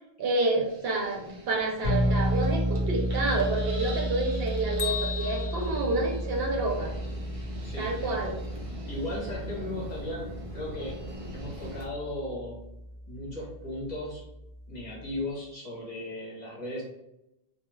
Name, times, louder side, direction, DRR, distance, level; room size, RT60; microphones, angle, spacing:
voice 1, 0.2-6.9 7.8-8.4, right 2 dB, 70° right, 0 dB, 0.8 m, -29 dB
sound 1, 0.6-11.9, right 1 dB, 45° right, 0.4 m, -43 dB
sound 2, 1.8-15.3, equal, 30° right, 0.9 m, -33 dB
Bell, 4.8-6.8, left 8 dB, 70° left, 0.7 m, -37 dB
voice 2, 7.6-8.2 8.9-10.3 10.5-11.0 11.3-12.6 13.1-14.3 14.7-16.8, left 1 dB, 45° left, -5 dB, 0.9 m, -36 dB
2.3 x 2.2 x 3.0 m, 0.88 s
omnidirectional pair, 1.1 m